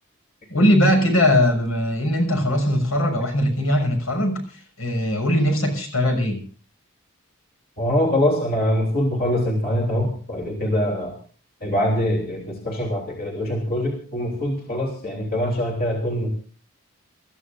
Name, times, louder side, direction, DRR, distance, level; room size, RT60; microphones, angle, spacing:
voice 1, 0.5-6.4, left 1 dB, 75° left, 4 dB, 6.4 m, -20 dB
voice 2, 7.8-11.1 11.6-16.3, left 1 dB, 45° left, 0 dB, 3.3 m, -23 dB
28.5 x 14.5 x 2.6 m, 0.41 s
head